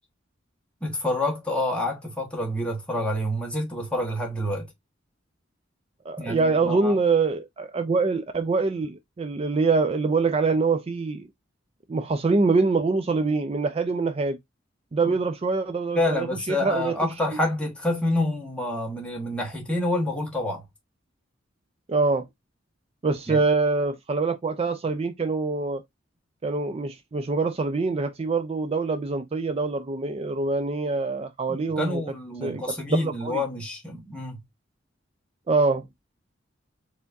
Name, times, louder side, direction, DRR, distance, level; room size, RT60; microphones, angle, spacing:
voice 1, 0.8-4.7 6.2-7.0 15.0-15.1 15.9-20.6 23.3-23.4 31.5-34.4, left 1 dB, 5° left, 1.6 m, -28 dB
voice 2, 6.1-11.3 11.9-14.4 14.9-17.0 21.9-22.3 23.0-25.8 26.4-32.0 32.4-33.4 35.5-35.8, right 3 dB, 30° right, 0.4 m, -24 dB
4.4 x 3.5 x 2.6 m
head